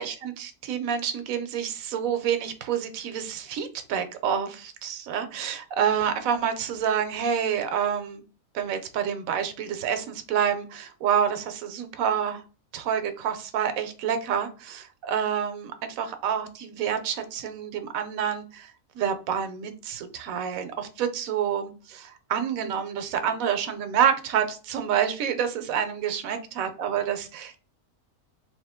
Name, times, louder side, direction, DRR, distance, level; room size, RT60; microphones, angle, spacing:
voice 1, 0.0-8.2 8.5-12.4 12.7-27.6, right 8 dB, 70° right, 1.0 m, -28 dB
3.6 x 2.9 x 3.5 m
omnidirectional pair, 1.6 m